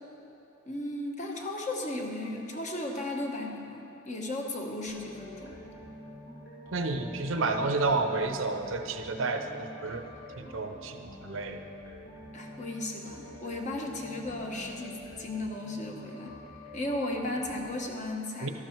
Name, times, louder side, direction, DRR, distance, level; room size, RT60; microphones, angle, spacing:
voice 1, 0.7-5.6 12.3-16.3 16.7-18.5, left 1 dB, 40° left, 1 dB, 1.2 m, -35 dB
sound 1, 4.9-17.7, left 1 dB, 75° left, 3.1 m, -47 dB
voice 2, 6.7-10.0 10.4-11.6 18.4-18.5, right 3 dB, 80° right, 6 dB, 0.8 m, -30 dB
12.5 x 12.0 x 4.6 m, 2.9 s
head